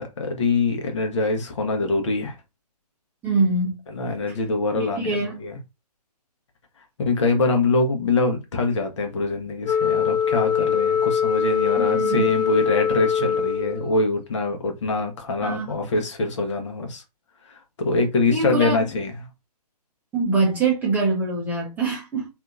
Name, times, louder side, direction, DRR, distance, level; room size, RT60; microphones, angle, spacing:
voice 1, 0.0-2.3 3.9-5.6 7.1-17.0 17.5-19.1, left 3 dB, 45° left, 0.9 m, -24 dB
voice 2, 3.2-3.8 4.3-4.4 4.8-5.4 11.8-12.2 15.4-15.7 18.3-18.8 20.1-22.3, right 3 dB, 10° right, 0.6 m, -24 dB
Wind instrument woodwind instrument, 9.6-14.0, left 7 dB, 85° left, 1.0 m, -22 dB
2.7 x 2.4 x 2.4 m
figure-of-eight pair, 130°, 21 cm